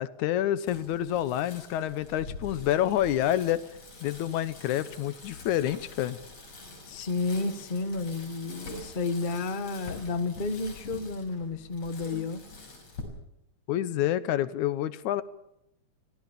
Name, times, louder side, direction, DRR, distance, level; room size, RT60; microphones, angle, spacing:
voice 1, 0.0-3.6 4.0-6.2 13.7-15.2, left 12 dB, 90° left, 2.4 m, -28 dB
Bicycle, 0.7-13.0, left 3 dB, 65° left, 7.1 m, -45 dB
voice 2, 6.9-12.4, left 3 dB, 35° left, 0.7 m, -31 dB
25.0 x 17.0 x 7.1 m
omnidirectional pair, 3.3 m